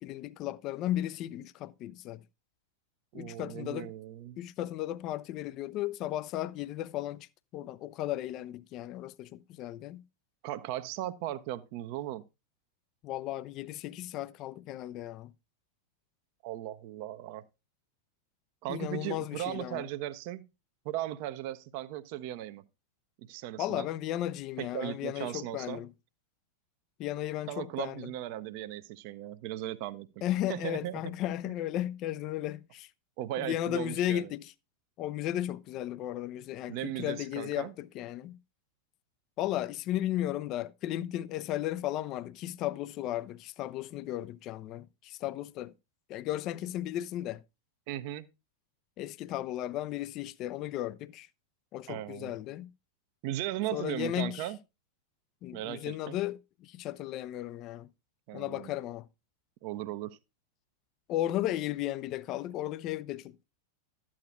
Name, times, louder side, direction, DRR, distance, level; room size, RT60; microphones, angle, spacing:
voice 1, 0.0-2.2 3.1-3.9 4.4-7.3 7.5-10.0 13.0-15.3 18.7-19.9 23.6-25.9 27.0-28.1 30.2-32.9 33.4-34.5 35.0-38.4 39.4-45.7 46.1-47.4 49.0-51.3 51.7-52.7 53.7-54.5 55.4-57.9 58.3-59.1 61.1-63.4, left 13 dB, 35° left, 0.4 m, -35 dB
voice 2, 3.1-4.4 10.4-12.2 16.4-17.4 18.6-20.4 20.8-22.6 23.2-23.9 24.6-25.8 27.5-30.1 30.5-31.0 31.4-31.5 33.2-34.3 36.7-37.7 47.9-48.3 51.9-52.3 53.2-54.6 55.5-56.2 58.3-58.7 59.6-60.2, right 13 dB, 45° right, 0.6 m, -37 dB
12.5 x 8.6 x 2.3 m
figure-of-eight pair, 90°, 0 cm